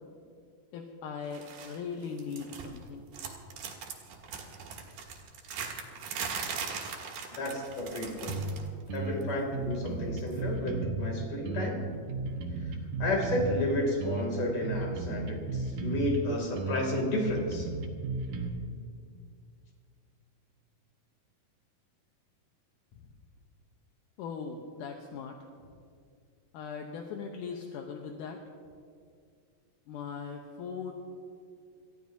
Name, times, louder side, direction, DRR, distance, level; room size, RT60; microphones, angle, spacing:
voice 1, 0.7-3.0 24.2-25.4 26.5-28.4 29.9-30.9, left 6 dB, 75° left, 2 dB, 2.4 m, -39 dB
sound 1, 1.3-1.8 2.0-2.8 3.1-8.7 9.0-9.2 10.3-10.4, right 6 dB, 85° right, 3.3 m, -39 dB
voice 2, 7.3-8.4 8.9-11.8 13.0-17.7, left 1 dB, 45° left, 0 dB, 3.5 m, -32 dB
sound 2, 8.3-8.6 8.9-11.1 11.5-13.7 14.0-16.2 16.6-18.5, right 3 dB, 65° right, 2.5 m, -34 dB
28.0 x 14.5 x 2.7 m, 2.3 s
omnidirectional pair, 3.9 m